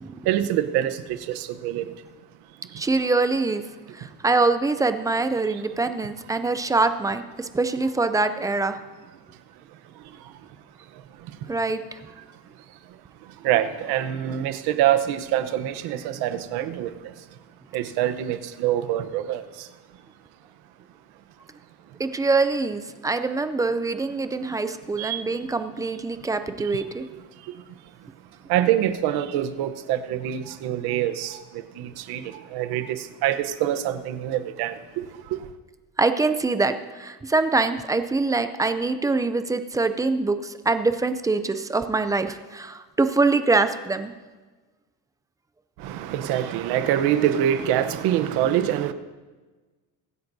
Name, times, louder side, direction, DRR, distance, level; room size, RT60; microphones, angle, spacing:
voice 1, 0.2-1.9 13.4-17.1 17.7-19.7 25.0-25.2 28.5-35.0 35.3-35.5 45.8-48.9, right 11 dB, 80° right, 1.0 m, -25 dB
voice 2, 2.8-3.6 3.9-8.8 11.5-11.8 22.0-27.1 36.0-44.1, right 3 dB, 10° right, 0.3 m, -24 dB
23.5 x 10.5 x 2.7 m
cardioid pair, 160°, 38 cm